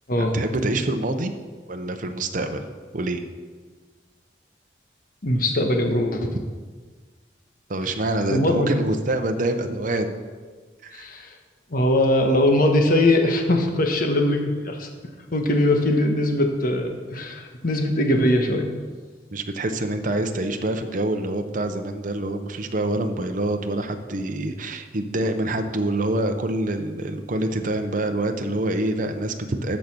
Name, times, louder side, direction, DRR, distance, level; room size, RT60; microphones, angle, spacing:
voice 1, 0.2-1.3 1.7-2.6 2.9-3.2 7.7-10.1 10.8-11.1 19.3-29.8, right 1 dB, 50° right, 6 dB, 0.8 m, -26 dB
voice 2, 5.2-6.3 8.3-8.7 10.9-11.3 11.7-14.9 15.3-18.7, left 1 dB, 55° left, 3 dB, 1.4 m, -21 dB
13.5 x 5.4 x 6.1 m, 1.4 s
head